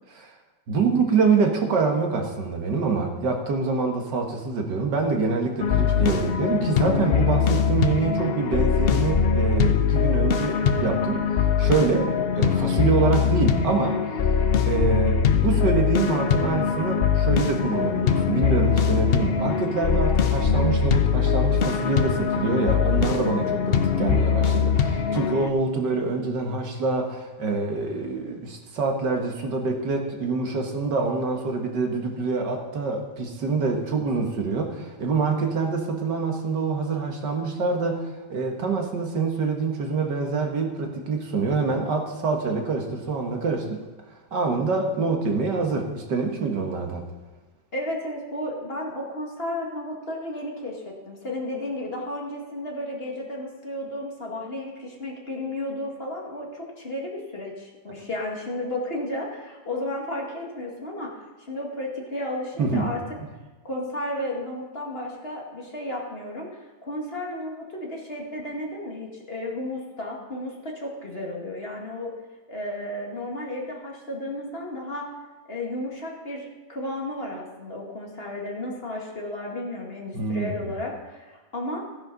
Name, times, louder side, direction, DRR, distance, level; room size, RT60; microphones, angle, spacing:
voice 1, 0.7-11.3 11.6-14.0 14.7-43.8 44.3-47.0 62.6-62.9 80.1-80.5, right 4 dB, 85° right, 3 dB, 2.1 m, -26 dB
sound 1, 5.6-25.5, left 6 dB, 70° left, 0.5 m, -22 dB
voice 2, 47.7-61.2 61.5-63.0 63.6-66.5 66.8-72.1 72.5-75.1 75.5-81.8, left 1 dB, 35° left, -2 dB, 2.2 m, -33 dB
15.0 x 10.0 x 4.0 m, 1.3 s
omnidirectional pair, 1.8 m